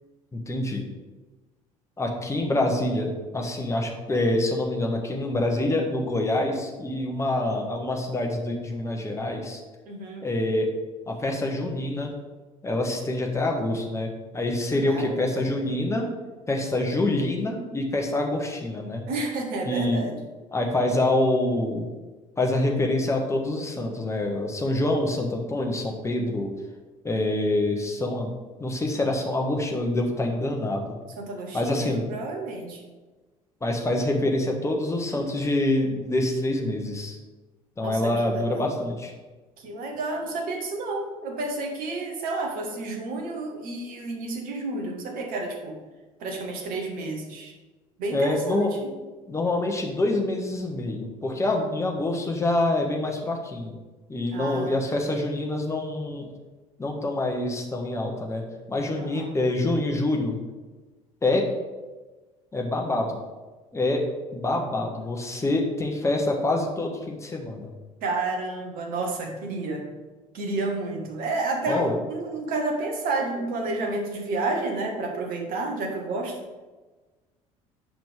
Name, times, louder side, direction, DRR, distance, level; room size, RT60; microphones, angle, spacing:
voice 1, 0.3-0.8 2.0-9.6 10.2-10.7 11.1-12.1 12.6-16.1 16.5-19.1 19.7-20.1 20.5-21.9 22.4-26.5 27.0-28.3 28.6-30.9 31.5-32.0 33.6-37.2 37.8-39.1 48.1-48.7 49.3-53.8 54.1-56.3 56.8-58.4 58.7-60.4 61.2-61.5 62.5-63.2 63.7-64.0 64.3-67.7 71.7-72.0, left 2 dB, 15° left, 1 dB, 1.3 m, -26 dB
voice 2, 9.8-10.3 14.9-15.6 19.1-20.2 31.2-32.8 37.8-38.7 39.6-45.8 46.2-47.5 48.0-48.9 54.3-55.2 59.0-59.4 68.0-69.9 70.3-76.4, right 2 dB, 55° right, 2 dB, 1.5 m, -30 dB
8.8 x 5.8 x 3.4 m, 1.2 s
figure-of-eight pair, 55°, 18 cm